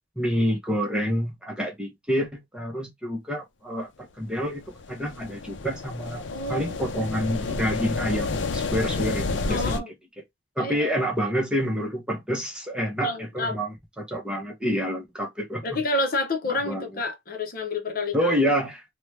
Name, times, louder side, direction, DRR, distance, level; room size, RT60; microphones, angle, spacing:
voice 1, 0.2-6.2 6.5-9.7 10.6-15.6 16.6-16.9 18.1-18.8, equal, 5° right, 0.8 m, -28 dB
sound 1, 4.5-9.8, left 3 dB, 80° left, 0.5 m, -30 dB
voice 2, 6.3-6.8 9.5-9.9 10.6-10.9 13.0-13.6 15.6-18.3, left 2 dB, 50° left, 0.8 m, -29 dB
2.8 x 2.2 x 3.2 m
head